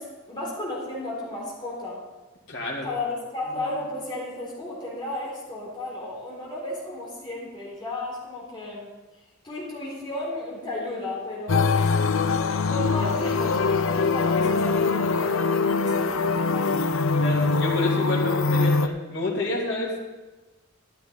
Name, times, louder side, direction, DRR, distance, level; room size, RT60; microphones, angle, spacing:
voice 1, 0.0-2.0 2.8-8.9 9.4-11.8 12.6-16.9, left 2 dB, 20° left, -4 dB, 3.7 m, -34 dB
voice 2, 2.5-2.9 3.5-3.6 17.2-20.0, left 2 dB, 60° left, -3 dB, 3.0 m, -29 dB
sound 1, 11.5-18.9, left 4 dB, 75° left, 0.6 m, -23 dB
13.0 x 12.5 x 4.0 m, 1.2 s
head